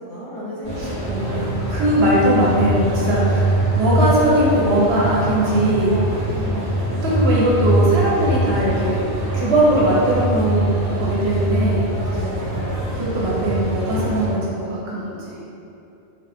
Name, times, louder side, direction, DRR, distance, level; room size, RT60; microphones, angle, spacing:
voice 1, 0.1-2.0 6.3-6.9 11.9-12.6, left 1 dB, 40° left, -10 dB, 0.6 m, -33 dB
sound 1, 0.6-14.3, right 1 dB, 75° left, 2.0 m, -23 dB
voice 2, 0.8-6.0 6.9-10.7 11.0-11.8 12.9-15.4, right 1 dB, 65° right, -5 dB, 0.9 m, -20 dB
3.6 x 2.3 x 3.3 m, 2.8 s
omnidirectional pair, 1.2 m